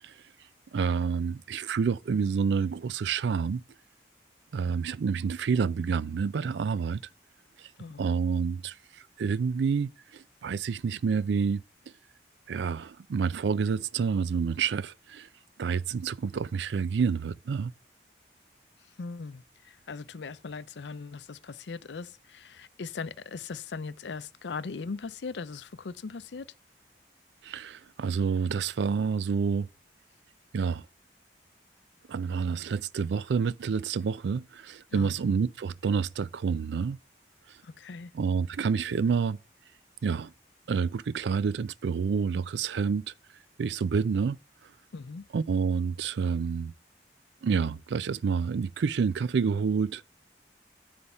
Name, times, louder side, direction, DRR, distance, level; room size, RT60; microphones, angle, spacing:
voice 1, 0.7-3.6 4.5-7.0 8.0-8.7 9.2-11.6 12.5-15.3 15.6-17.7 27.4-29.7 30.5-30.8 32.1-37.0 38.1-39.4 40.0-40.3 40.7-43.0 43.6-44.4 45.3-46.7 47.4-50.0, right 5 dB, 80° right, 0.4 m, -28 dB
voice 2, 19.0-26.5 34.9-35.2 37.6-38.1 44.9-45.2, left 4 dB, 80° left, 0.5 m, -39 dB
9.6 x 3.5 x 6.9 m
head